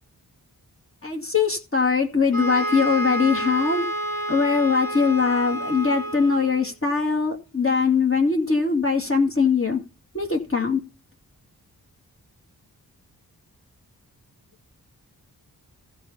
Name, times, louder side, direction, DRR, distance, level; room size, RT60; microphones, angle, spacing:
voice 1, 1.0-3.9 4.3-9.8 10.1-10.8, left 5 dB, 35° left, 1 dB, 2.2 m, -21 dB
sound 1, 2.3-6.7, right 1 dB, 65° left, 3.0 m, -29 dB
13.5 x 5.6 x 5.4 m, 0.33 s
cardioid pair, 45°, 37 cm